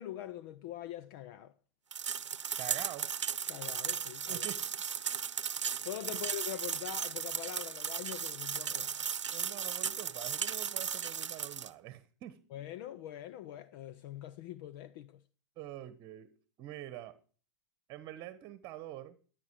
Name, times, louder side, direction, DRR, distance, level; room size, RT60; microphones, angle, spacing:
voice 1, 0.0-1.5 3.5-4.5 5.8-9.0 12.5-15.2, left 12 dB, 50° left, 0.8 m, -43 dB
sound 1, 1.9-11.7, right 7 dB, 85° right, 0.8 m, -36 dB
voice 2, 2.6-3.1 4.3-4.7 9.3-12.4 15.6-16.3 16.6-17.2 17.9-19.2, right 13 dB, 35° right, 1.3 m, -45 dB
15.0 x 11.0 x 4.8 m
hypercardioid pair, 115°, 15 cm